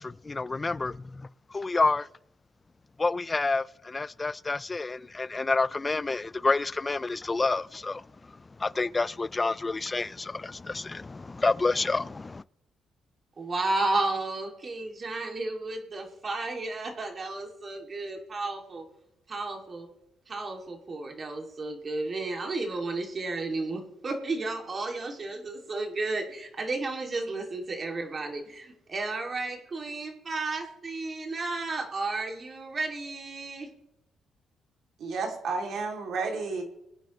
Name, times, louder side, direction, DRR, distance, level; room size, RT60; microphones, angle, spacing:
voice 1, 0.0-2.1 3.0-12.4, left 3 dB, 25° left, 0.4 m, -29 dB
voice 2, 13.4-18.9 19.3-19.9 20.3-33.7, right 2 dB, 40° right, 2.5 m, -33 dB
voice 3, 35.0-36.6, right 4 dB, 70° right, 2.8 m, -31 dB
22.5 x 9.1 x 3.1 m
cardioid pair, 90°, 0 cm